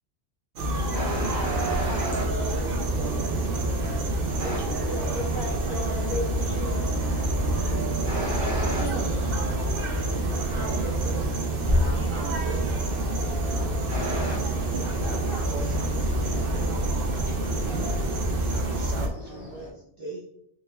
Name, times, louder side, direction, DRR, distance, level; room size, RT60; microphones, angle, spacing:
sound 1, 0.6-19.1, right 1 dB, 60° right, 0.8 m, -27 dB
voice 1, 0.9-2.3 4.4-4.6 8.0-8.9 13.9-14.4, equal, 25° right, -1 dB, 0.9 m, -31 dB
sound 2, 1.9-19.7, equal, 55° left, 1.8 m, -41 dB
voice 2, 2.1-3.4 4.4-6.9, left 1 dB, 40° left, -3 dB, 0.7 m, -36 dB
voice 3, 8.7-9.7 10.5-11.3 11.7-12.7 14.8-16.5 17.1-17.3 18.5-20.2, right 2 dB, 40° right, -4 dB, 0.4 m, -39 dB
4.6 x 2.1 x 3.3 m, 0.73 s
omnidirectional pair, 1.1 m